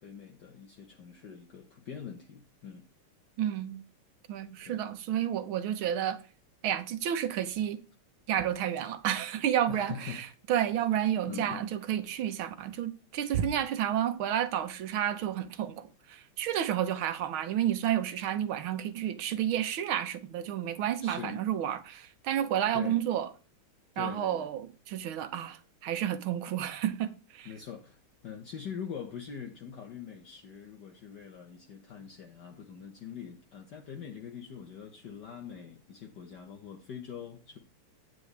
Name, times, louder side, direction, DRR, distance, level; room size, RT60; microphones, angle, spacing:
voice 1, 0.0-2.8 4.6-4.8 9.7-10.2 11.3-11.7 21.0-21.5 22.7-23.0 23.9-24.5 27.4-37.6, left 7 dB, 55° left, 1.5 m, -43 dB
voice 2, 3.4-3.8 4.3-6.2 6.6-7.8 8.3-23.3 24.0-27.5, right 10 dB, 70° right, 1.7 m, -31 dB
9.3 x 9.2 x 3.3 m
omnidirectional pair, 2.4 m